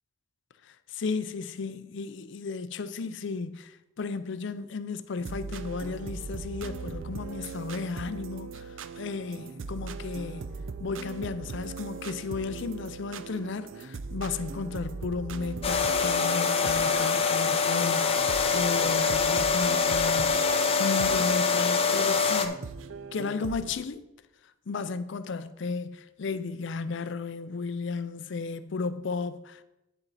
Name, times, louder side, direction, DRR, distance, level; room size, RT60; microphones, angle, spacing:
voice 1, 0.6-22.5 23.1-24.1 24.7-29.6, left 4 dB, 65° left, 0.5 m, -34 dB
sound 1, 5.2-23.7, right 4 dB, 80° right, 0.5 m, -40 dB
sound 2, 15.6-22.5, left 5 dB, 30° left, 0.7 m, -25 dB
9.2 x 6.9 x 4.1 m
head